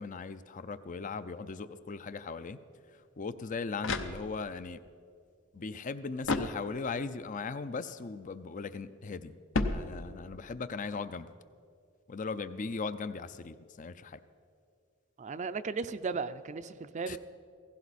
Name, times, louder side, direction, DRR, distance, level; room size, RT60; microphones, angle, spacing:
voice 1, 0.0-2.6 2.9-4.8 5.5-9.3 9.6-11.3 12.1-14.2 17.1-17.2, left 4 dB, 40° left, 13 dB, 0.5 m, -38 dB
sound 1, 3.4-4.7 6.2-7.1 9.5-10.4, left 3 dB, 65° left, 0.8 m, -34 dB
voice 2, 15.2-17.2, right 4 dB, 35° right, 12 dB, 0.5 m, -36 dB
16.0 x 16.0 x 4.2 m, 2.3 s
head